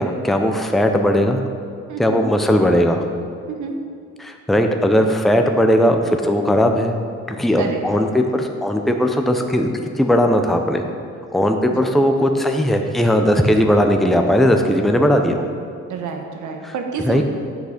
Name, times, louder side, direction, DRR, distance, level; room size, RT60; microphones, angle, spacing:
voice 1, 0.0-1.4 2.0-3.0 4.2-6.9 7.3-9.7 10.0-10.8 11.3-15.4 17.0-17.2, equal, ahead, 4 dB, 0.6 m, -17 dB
voice 2, 1.9-2.2 3.5-3.8 7.6-8.0 11.7-11.8 15.9-17.2, right 5 dB, 75° right, 4 dB, 1.1 m, -28 dB
8.1 x 6.0 x 5.1 m, 2.3 s
cardioid pair, 90°, 30 cm